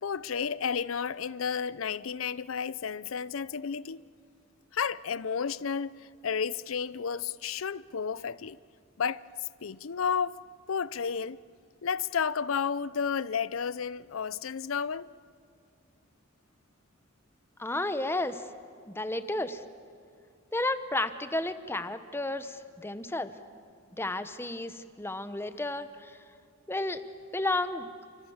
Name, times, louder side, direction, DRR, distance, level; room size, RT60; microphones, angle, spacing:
voice 1, 0.0-4.0 4.7-8.6 9.0-9.2 9.6-10.4 10.7-11.4 11.8-15.1, left 6 dB, 90° left, 0.6 m, -32 dB
voice 2, 17.6-18.4 18.9-19.6 20.5-23.3 24.0-26.1 26.7-27.0 27.3-27.9, left 2 dB, 10° left, 1.0 m, -32 dB
29.0 x 25.5 x 7.3 m
head